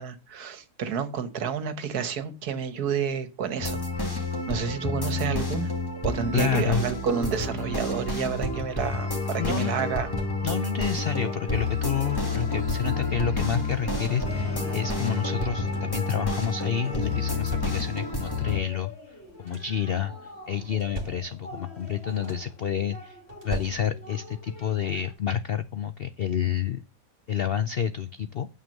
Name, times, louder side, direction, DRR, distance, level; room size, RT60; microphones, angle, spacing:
voice 1, 0.0-3.8 4.1-5.7 6.0-10.1, right 7 dB, 70° right, 1.6 m, -30 dB
sound 1, 3.6-18.6, left 3 dB, 15° left, 1.8 m, -29 dB
voice 2, 6.3-6.8 9.4-9.7 10.4-23.2 23.4-26.8 27.3-28.5, left 8 dB, 70° left, 0.5 m, -29 dB
sound 2, 8.3-8.8 9.8-10.7 11.6-12.5 13.4-14.6 15.2-15.3 15.5-16.1 17.0-18.2 19.1-19.9 20.6-21.6 21.9-22.7 23.3-24.3 25.6-25.7 26.2-26.4, right 3 dB, 30° right, 2.2 m, -42 dB
sound 3, 10.7-25.1, left 2 dB, 40° left, 2.2 m, -42 dB
9.1 x 6.9 x 6.5 m
omnidirectional pair, 1.7 m